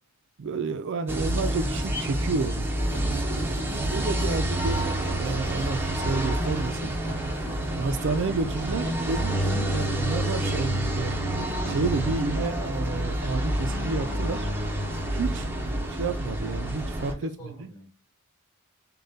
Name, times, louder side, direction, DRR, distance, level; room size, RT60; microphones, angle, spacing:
voice 1, 0.4-2.7 3.9-6.9 7.7-11.2 11.6-14.5 15.1-17.7, right 4 dB, 55° right, 0.4 m, -30 dB
sound 1, 1.1-17.1, right 1 dB, 10° right, 0.6 m, -28 dB
sound 2, 2.8-12.4, right 2 dB, 40° left, 1.6 m, -43 dB
voice 2, 3.0-3.7 17.1-18.2, right 1 dB, 15° left, 1.9 m, -48 dB
6.5 x 2.2 x 2.7 m
head